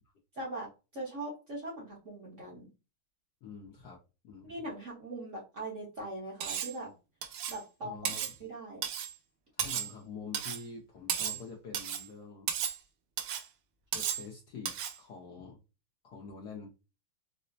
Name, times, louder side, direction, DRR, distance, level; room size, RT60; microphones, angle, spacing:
voice 1, 0.3-0.7 0.9-2.7 4.4-6.9 7.5-8.8, right 2 dB, 45° right, -4 dB, 1.1 m, -41 dB
voice 2, 3.4-4.0 4.2-4.7 7.8-8.2 9.5-12.5 13.9-15.6 16.0-16.7, left 5 dB, 70° left, 0 dB, 1.0 m, -46 dB
Cutlery silverware, 6.4-6.8 7.2-7.6 8.0-8.3 8.8-9.1 9.6-9.9 10.3-10.6 11.1-11.4 11.7-12.1 12.5-12.8 13.2-13.5 13.9-14.3 14.7-15.0, right 9 dB, 85° right, 1.5 m, -34 dB
4.9 x 2.0 x 2.5 m, 0.29 s
omnidirectional pair, 2.3 m